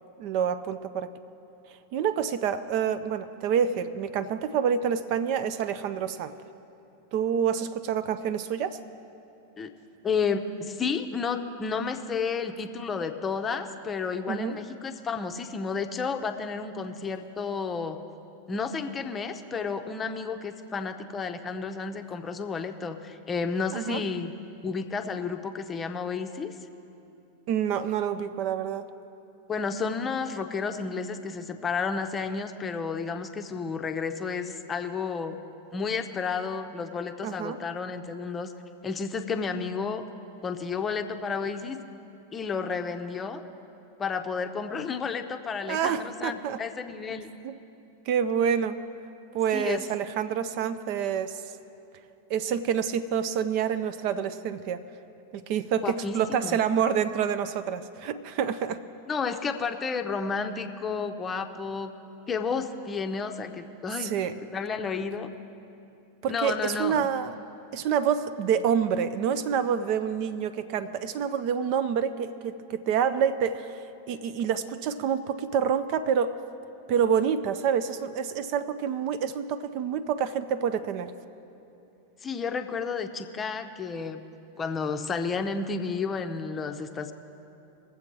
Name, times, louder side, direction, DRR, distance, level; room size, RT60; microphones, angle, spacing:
voice 1, 0.2-1.1 1.9-6.3 7.1-8.8 14.3-14.6 23.7-24.0 27.5-28.9 37.2-37.6 45.7-46.6 47.4-47.6 48.1-48.8 49.3-51.4 52.3-54.8 55.3-58.8 64.0-64.3 66.2-67.3 67.7-76.4 76.9-81.1, right 8 dB, 45° right, 12 dB, 0.4 m, -27 dB
voice 2, 10.0-18.0 18.5-24.3 24.6-26.5 29.5-35.4 35.7-38.5 38.8-40.0 40.4-41.8 42.3-43.4 44.0-47.3 49.5-49.8 55.8-56.6 59.1-61.9 62.3-64.1 64.5-65.3 66.3-67.1 82.2-84.2 84.6-87.1, left 5 dB, 20° left, 7 dB, 0.7 m, -31 dB
20.5 x 7.6 x 4.5 m, 2.8 s
figure-of-eight pair, 90°, 0 cm